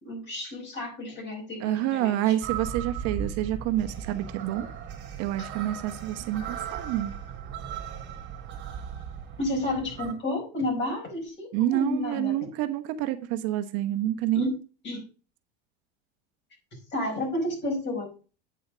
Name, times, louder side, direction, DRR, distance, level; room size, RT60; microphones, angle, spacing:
voice 1, 0.0-2.3 9.4-12.3 14.3-14.6 14.8-15.0 16.9-18.1, left 1 dB, 35° left, 4.9 m, -31 dB
voice 2, 1.6-4.7 5.2-7.1 11.5-14.5, right 13 dB, 55° right, 1.0 m, -28 dB
sound 1, 2.4-10.1, right 8 dB, 35° right, 2.8 m, -37 dB
8.6 x 5.1 x 5.0 m
supercardioid pair, 110°, 30 cm